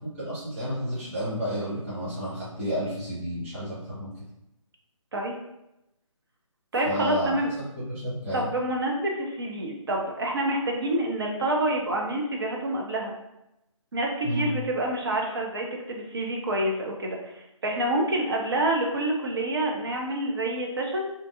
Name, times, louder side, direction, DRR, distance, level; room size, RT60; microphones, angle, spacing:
voice 1, 0.0-4.1 6.8-7.4 7.7-8.4 14.2-14.6, equal, 10° right, -12 dB, 1.2 m, -31 dB
voice 2, 6.7-7.5 8.3-13.1 13.9-21.1, right 1 dB, 45° right, 0 dB, 0.6 m, -27 dB
3.7 x 2.7 x 2.5 m, 0.87 s
figure-of-eight pair, 150°, 17 cm